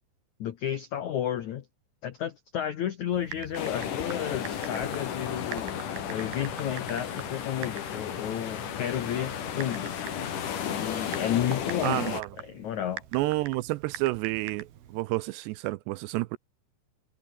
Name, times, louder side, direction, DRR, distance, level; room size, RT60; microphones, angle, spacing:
voice 1, 0.4-1.6 2.0-5.8 6.1-9.9 10.6-12.1 12.4-13.0, left 10 dB, 90° left, 1.6 m, -32 dB
Typing, 3.1-15.0, right 11 dB, 60° right, 3.6 m, -45 dB
sound 1, 3.5-12.2, left 8 dB, 50° left, 3.4 m, -34 dB
voice 2, 11.8-12.3 13.1-16.4, right 19 dB, 80° right, 2.6 m, -30 dB
omnidirectional pair, 5.3 m